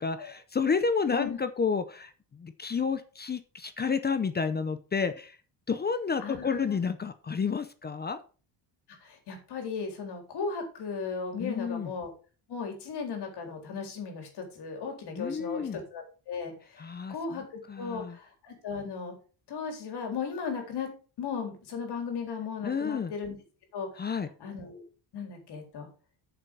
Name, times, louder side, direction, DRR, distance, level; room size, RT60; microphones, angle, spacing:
voice 1, 0.0-5.4 5.7-8.2 11.4-11.9 15.2-15.8 16.8-18.2 22.6-23.1 24.0-24.3, left 5 dB, 20° left, 11 dB, 0.6 m, -30 dB
voice 2, 6.2-6.8 9.0-12.1 12.5-16.5 17.1-17.4 17.8-19.1 19.5-20.9 21.2-23.3 23.7-24.0 24.4-24.8 25.1-25.9, left 5 dB, 50° left, 3 dB, 4.0 m, -36 dB
8.8 x 6.9 x 5.4 m, 0.36 s
cardioid pair, 160°, 49 cm